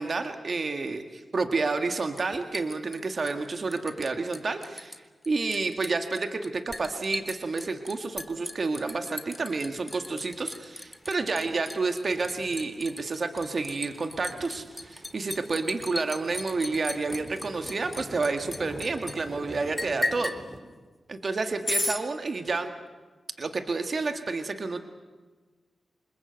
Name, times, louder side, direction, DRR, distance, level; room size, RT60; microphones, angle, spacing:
voice 1, 0.0-4.9 5.2-20.3 21.1-22.7 23.4-24.8, right 3 dB, 55° right, 7 dB, 1.9 m, -30 dB
Liquid, 2.2-4.1 4.3-5.0 5.2-19.2 19.8-20.4 21.7-22.0, left 1 dB, 20° left, 1.8 m, -35 dB
sound 1, 9.7-20.6, right 1 dB, 25° right, 5.8 m, -46 dB
25.5 x 20.5 x 8.0 m, 1.3 s
cardioid pair, 50°, 0 cm